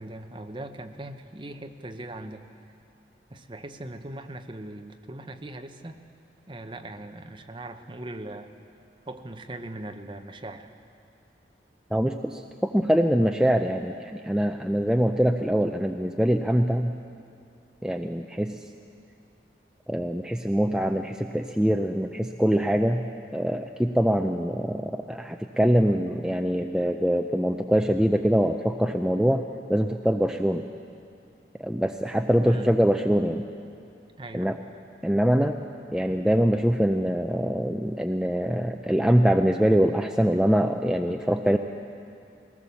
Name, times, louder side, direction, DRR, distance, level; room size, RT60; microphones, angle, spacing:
voice 1, 0.0-2.4 3.3-6.0 6.5-8.5 9.1-10.7 32.4-32.7 34.2-34.5, right 1 dB, 30° right, 6 dB, 0.9 m, -40 dB
voice 2, 11.9-16.9 17.8-18.6 19.9-23.0 23.3-29.4 29.7-30.7 31.6-33.5 34.3-34.6 35.0-35.6 35.9-41.6, equal, 5° right, 5 dB, 0.5 m, -23 dB
21.5 x 18.5 x 7.0 m, 2.5 s
head